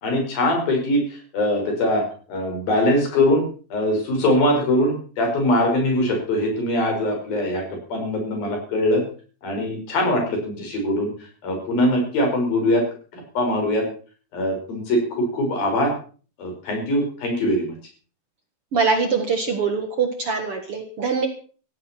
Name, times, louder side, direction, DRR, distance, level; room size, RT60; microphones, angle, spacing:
voice 1, 0.0-2.0 2.3-3.4 3.7-9.0 9.4-11.1 11.4-12.9 13.1-13.9 14.3-15.9 16.4-17.8, left 1 dB, 70° left, 2 dB, 7.0 m, -22 dB
voice 2, 18.7-21.3, right 5 dB, 50° right, 5 dB, 2.0 m, -23 dB
17.0 x 15.0 x 4.4 m, 0.39 s
omnidirectional pair, 4.3 m